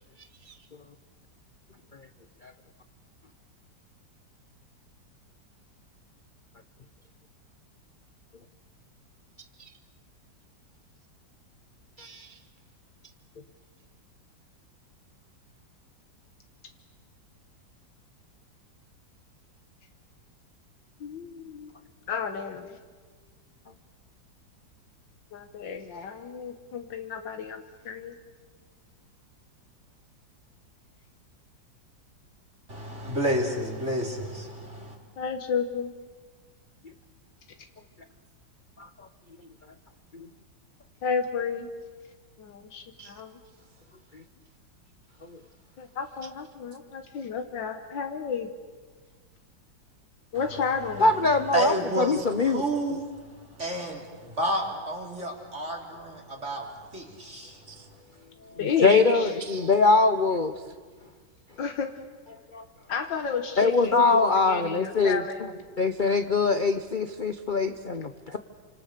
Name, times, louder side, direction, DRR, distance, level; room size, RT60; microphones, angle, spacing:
voice 1, 12.0-12.3 40.1-40.3 43.0-43.1 44.1-44.2 51.0-52.6 58.8-60.5 62.5-62.6 63.6-65.2 65.8-68.4, left 3 dB, 45° left, 9 dB, 0.7 m, -23 dB
voice 2, 21.0-21.7 22.1-22.8 25.3-28.2 35.2-35.9 41.0-41.7 42.4-43.3 45.8-48.5 50.3-51.2 58.6-59.3 61.6-62.0 62.9-64.0 64.5-65.4, left 6 dB, 80° left, 6 dB, 1.9 m, -32 dB
voice 3, 32.7-35.0 50.3-50.4 51.5-57.6, right 1 dB, 40° right, 0 dB, 3.6 m, -30 dB
29.0 x 26.0 x 6.7 m, 1.5 s
omnidirectional pair, 2.0 m